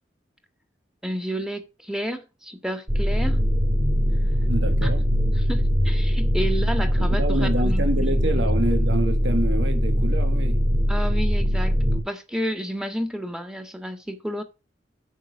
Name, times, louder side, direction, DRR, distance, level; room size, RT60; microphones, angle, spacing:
voice 1, 1.0-3.4 4.8-4.9 5.4-8.5 10.9-14.4, equal, 5° right, 1.8 m, -31 dB
sound 1, 2.9-12.0, equal, 30° right, 3.9 m, -21 dB
voice 2, 4.5-5.0 7.0-10.6, right 1 dB, 90° right, 1.9 m, -27 dB
9.2 x 7.5 x 5.2 m
head